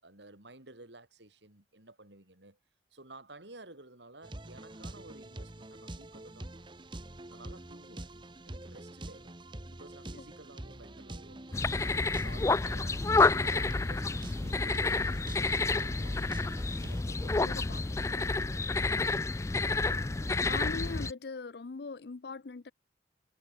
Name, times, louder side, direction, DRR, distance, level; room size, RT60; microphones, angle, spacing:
voice 1, 0.0-2.6 2.9-6.6 7.3-8.1 8.4-9.4 9.7-11.9 12.2-19.2 19.5-20.6, right 2 dB, 85° right, 4.9 m, -54 dB
sound 1, 4.2-17.0, right 1 dB, 25° right, 1.2 m, -45 dB
sound 2, 11.5-21.1, left 3 dB, 15° left, 0.3 m, -29 dB
voice 2, 17.4-17.8 20.4-22.7, left 4 dB, 65° left, 0.6 m, -40 dB
head